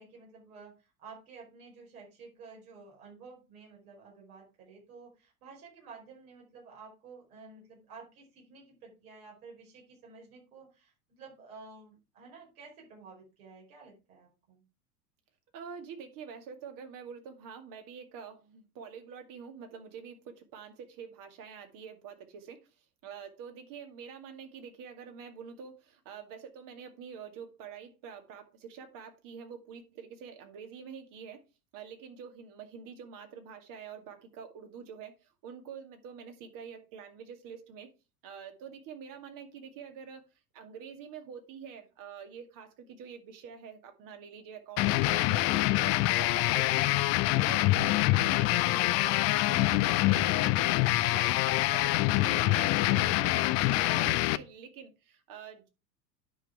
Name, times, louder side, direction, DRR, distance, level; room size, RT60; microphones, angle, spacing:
voice 1, 0.0-14.6, right 4 dB, 65° right, -1 dB, 5.1 m, -52 dB
voice 2, 15.5-31.4 31.7-37.9 38.2-40.2 40.5-46.8 47.3-50.6 51.0-55.7, right 7 dB, 40° right, 6 dB, 2.3 m, -46 dB
sound 1, 44.8-54.4, left 17 dB, 35° left, 0.5 m, -25 dB
9.8 x 5.7 x 4.8 m, 0.29 s
figure-of-eight pair, 85°, 48 cm